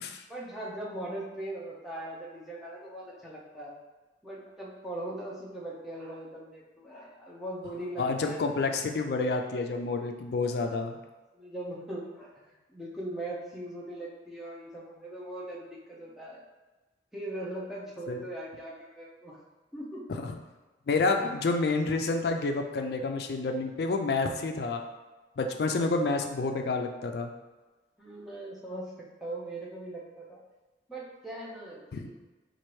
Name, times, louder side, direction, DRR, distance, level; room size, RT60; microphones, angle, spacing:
voice 1, 0.3-3.7 4.2-8.4 10.4-10.8 11.3-16.4 17.1-19.4 19.7-20.0 28.0-30.4 30.9-32.1, right 1 dB, ahead, -6 dB, 0.6 m, -40 dB
voice 2, 8.0-11.0 18.1-18.2 20.1-20.3 20.9-24.8 25.4-27.3 31.9-32.0, left 3 dB, 60° left, 5 dB, 0.4 m, -29 dB
4.3 x 2.5 x 3.1 m, 1.2 s
head